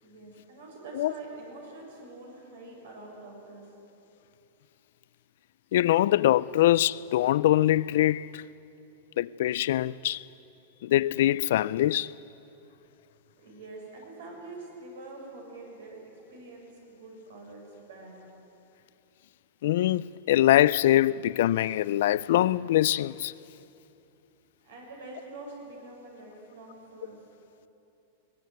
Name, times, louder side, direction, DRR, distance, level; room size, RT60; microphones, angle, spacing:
voice 1, 0.0-3.7 13.4-18.2 24.6-27.2, right 2 dB, 90° right, 7.1 m, -45 dB
voice 2, 5.7-8.4 9.2-10.2 10.8-12.1 19.6-23.3, left 13 dB, 70° left, 0.4 m, -23 dB
20.0 x 19.0 x 9.3 m
supercardioid pair, 145°, 0 cm